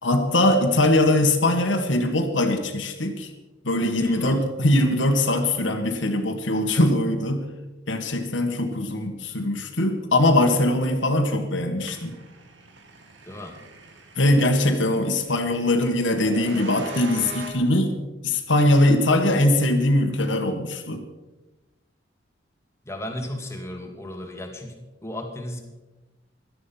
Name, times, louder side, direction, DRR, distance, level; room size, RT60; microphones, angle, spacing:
voice 1, 0.0-3.3 3.6-7.5 7.9-12.1 14.2-17.9 18.2-21.0, left 1 dB, 80° left, 3 dB, 1.8 m, -21 dB
voice 2, 4.0-4.4 13.3-13.6 22.9-25.6, left 1 dB, 15° left, 3 dB, 2.3 m, -35 dB
sound 1, 11.8-17.5, right 3 dB, 75° right, 2.4 m, -42 dB
17.0 x 12.5 x 5.8 m, 1.1 s
head